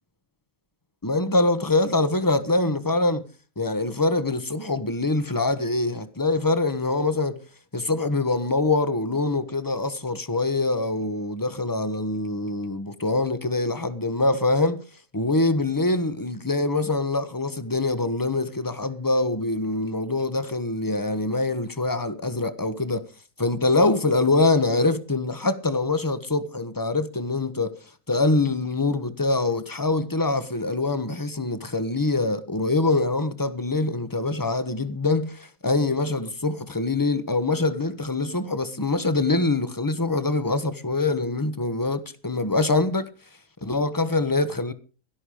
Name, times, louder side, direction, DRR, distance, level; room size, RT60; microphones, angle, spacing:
voice 1, 1.0-3.3 3.6-7.4 7.7-14.8 15.1-23.1 23.4-27.8 28.1-43.1 43.6-44.7, left 2 dB, 15° left, 1.2 m, -24 dB
17.5 x 12.5 x 5.0 m
omnidirectional pair, 1.4 m